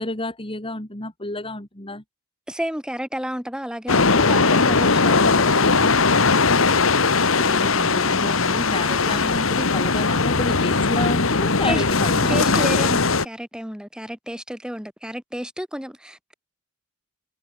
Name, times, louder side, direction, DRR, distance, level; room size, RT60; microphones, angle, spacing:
voice 1, 0.0-2.0 7.4-12.6, left 2 dB, 25° left, 3.5 m, -30 dB
voice 2, 2.5-5.9 11.6-11.8 12.3-16.3, equal, 5° right, 3.4 m, -31 dB
sound 1, 3.9-13.2, left 4 dB, 70° left, 1.7 m, -19 dB
head